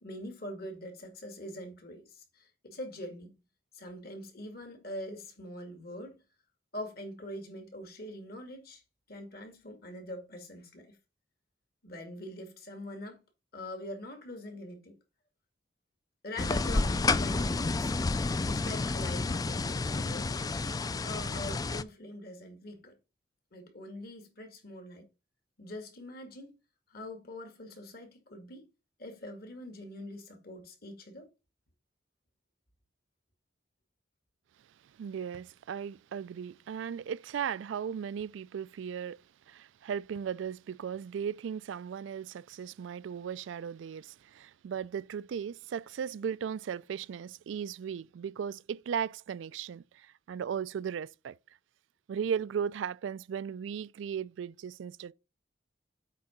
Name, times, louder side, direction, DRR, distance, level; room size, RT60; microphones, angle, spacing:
voice 1, 0.0-3.3 3.7-6.2 6.7-8.8 9.1-11.0 11.8-13.2 13.5-14.9 16.2-17.9 18.4-20.3 21.0-23.0 23.5-25.1 25.6-26.5 26.9-28.7 29.0-31.3, left 1 dB, 55° left, 2.2 m, -43 dB
sound 1, 16.4-21.8, left 3 dB, 20° left, 0.3 m, -30 dB
voice 2, 35.0-39.2 39.5-51.4 52.1-55.1, right 7 dB, 85° right, 0.3 m, -36 dB
8.4 x 3.8 x 5.8 m
head